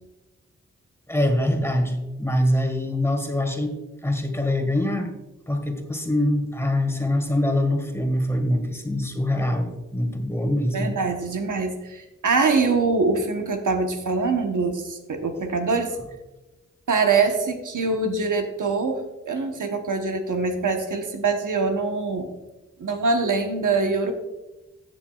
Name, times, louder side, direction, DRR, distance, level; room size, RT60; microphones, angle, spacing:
voice 1, 1.1-3.7 4.0-5.1 5.5-10.9, left 1 dB, 10° left, 5 dB, 1.7 m, -24 dB
voice 2, 10.7-16.0 16.9-22.3 22.8-24.1, right 4 dB, 85° right, 4 dB, 1.1 m, -24 dB
15.5 x 7.0 x 2.4 m, 1.0 s
cardioid pair, 50°, 30 cm